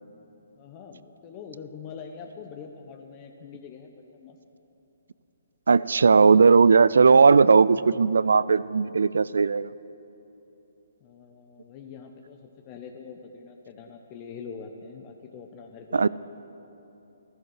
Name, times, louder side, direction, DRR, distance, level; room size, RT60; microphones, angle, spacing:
voice 1, 0.6-4.4 11.0-16.1, left 6 dB, 30° left, 4 dB, 1.0 m, -43 dB
voice 2, 5.7-9.7 15.9-16.1, right 5 dB, 70° right, 19 dB, 0.4 m, -17 dB
14.5 x 14.5 x 6.5 m, 3.0 s
figure-of-eight pair, 135°, 0 cm